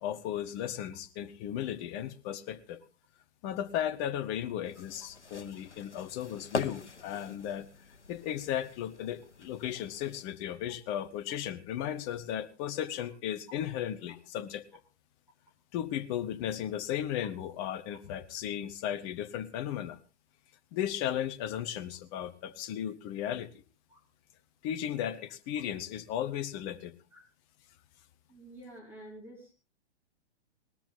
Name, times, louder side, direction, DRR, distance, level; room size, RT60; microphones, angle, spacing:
voice 1, 0.0-2.8 3.4-7.7 8.1-14.6 15.7-20.0 20.7-23.6 24.6-27.0, left 10 dB, 25° left, 11 dB, 0.8 m, -35 dB
sound 1, 4.6-10.2, left 4 dB, 80° left, 1.0 m, -42 dB
voice 2, 28.3-29.5, right 1 dB, 5° right, -2 dB, 4.3 m, -49 dB
18.5 x 13.0 x 3.6 m, 0.31 s
figure-of-eight pair, 115°, 34 cm